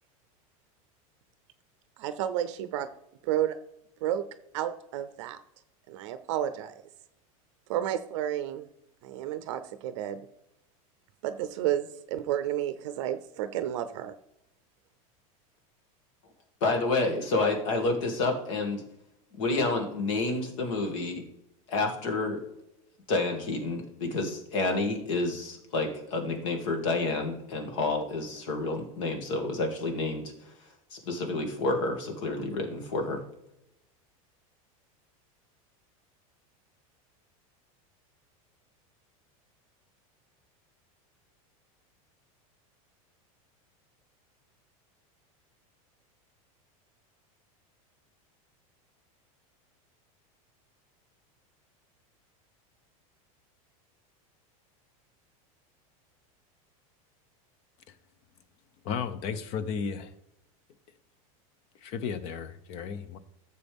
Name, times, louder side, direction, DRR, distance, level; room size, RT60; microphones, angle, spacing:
voice 1, 2.0-2.9 3.2-3.6 4.0-4.2 4.5-5.4 5.9-6.8 7.7-8.7 9.0-10.2 11.2-14.1, right 11 dB, 55° right, 0.6 m, -31 dB
voice 2, 16.6-18.8 19.4-21.2 21.7-22.4 23.1-30.2 30.9-33.2, left 3 dB, 60° left, 2.3 m, -29 dB
voice 3, 58.8-60.1 61.8-63.2, left 6 dB, 35° left, 0.7 m, -34 dB
14.0 x 6.9 x 3.5 m
supercardioid pair, 175°, 18 cm